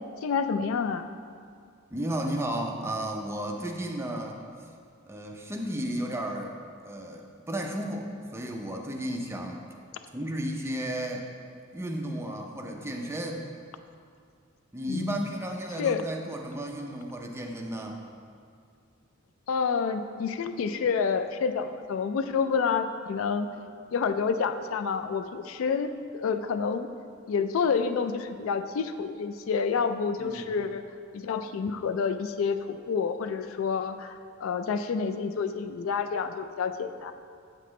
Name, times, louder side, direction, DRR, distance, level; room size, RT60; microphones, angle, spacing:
voice 1, 0.2-1.1 14.9-15.2 15.8-16.0 19.5-23.5 23.9-26.9 27.3-30.8 31.1-34.1 34.4-37.1, left 5 dB, 70° left, 9 dB, 0.3 m, -28 dB
voice 2, 1.9-4.4 5.1-6.5 6.8-9.6 10.1-11.3 11.7-13.4 14.7-18.0 30.2-30.5, right 1 dB, 15° right, 1 dB, 0.5 m, -33 dB
7.8 x 5.8 x 3.1 m, 2.2 s
head